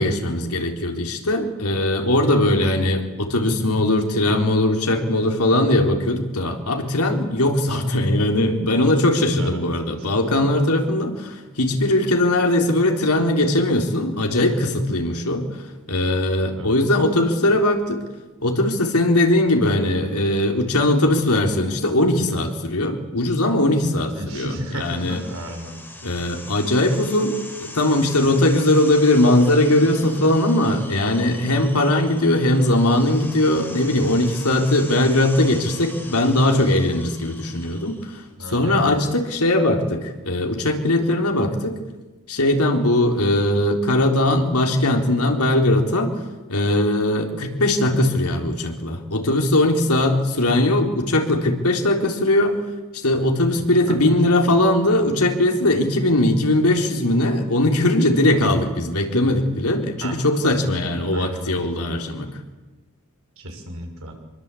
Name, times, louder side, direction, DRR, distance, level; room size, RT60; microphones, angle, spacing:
voice 1, 0.0-18.0 18.4-25.2 26.0-41.8 42.3-46.2 46.5-52.6 52.9-62.3, left 1 dB, 80° left, 3 dB, 3.9 m, -20 dB
voice 2, 2.6-2.9 9.3-9.6 16.6-16.8 24.1-25.8 38.4-39.1 53.9-54.0 60.0-60.2 61.1-61.7 63.4-64.1, right 1 dB, 65° right, 3 dB, 6.0 m, -34 dB
sound 1, 24.5-38.2, left 2 dB, 10° left, 5.0 m, -41 dB
26.0 x 22.5 x 8.5 m, 1.2 s
head